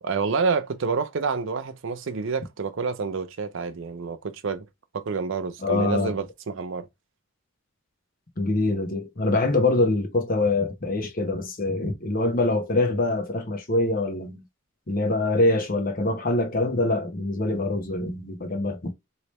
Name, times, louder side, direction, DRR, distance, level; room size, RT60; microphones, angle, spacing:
voice 1, 0.0-4.7 4.9-6.9, right 4 dB, 60° right, 0.5 m, -28 dB
voice 2, 5.6-6.1 8.4-14.4 14.9-18.9, left 2 dB, 40° left, 0.8 m, -24 dB
3.3 x 2.8 x 3.0 m
head